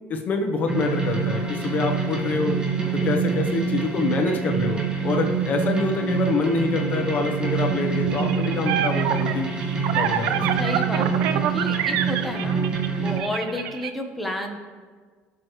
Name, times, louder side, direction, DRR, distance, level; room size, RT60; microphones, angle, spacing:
voice 1, 0.1-2.6 2.9-9.5 9.9-10.4, left 3 dB, 40° left, 3 dB, 1.0 m, -26 dB
sound 1, 0.7-13.2, right 5 dB, 20° right, 1.6 m, -26 dB
sound 2, 8.1-13.9, right 10 dB, 75° right, 0.6 m, -27 dB
voice 2, 10.6-12.7 13.0-14.6, left 1 dB, ahead, 1 dB, 1.2 m, -31 dB
18.0 x 6.2 x 3.3 m, 1.5 s
cardioid pair, 130°, 4 cm